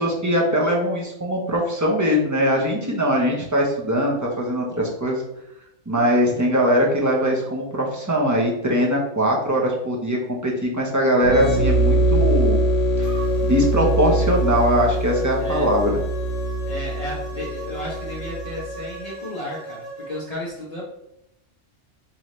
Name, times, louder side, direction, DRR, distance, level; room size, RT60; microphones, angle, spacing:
voice 1, 0.0-5.2 5.9-12.6 13.0-16.0, equal, 20° right, -1 dB, 0.6 m, -21 dB
sound 1, 11.2-18.7, right 1 dB, 60° left, 1.0 m, -22 dB
sound 2, 13.0-20.2, right 1 dB, 70° right, 2.0 m, -37 dB
voice 2, 15.4-15.7 16.6-20.8, left 1 dB, 35° left, -7 dB, 0.9 m, -33 dB
4.8 x 2.7 x 3.1 m, 0.81 s
omnidirectional pair, 1.3 m